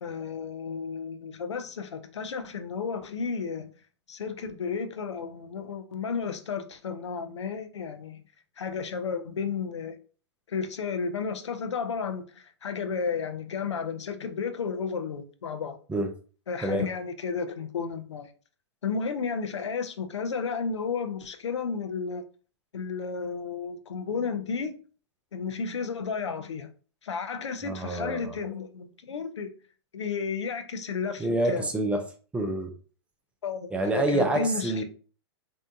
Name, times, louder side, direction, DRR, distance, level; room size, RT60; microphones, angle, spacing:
voice 1, 0.0-3.7 4.1-8.2 8.6-10.0 10.5-15.8 16.5-18.3 18.8-22.2 22.7-24.7 25.3-26.7 27.0-29.5 29.9-31.7 33.4-34.8, left 5 dB, 80° left, 0.5 m, -32 dB
voice 2, 27.6-28.4 31.2-32.0 32.3-32.7 33.7-34.8, right 2 dB, 10° right, 0.3 m, -27 dB
2.7 x 2.1 x 2.6 m
hypercardioid pair, 120°, 15 cm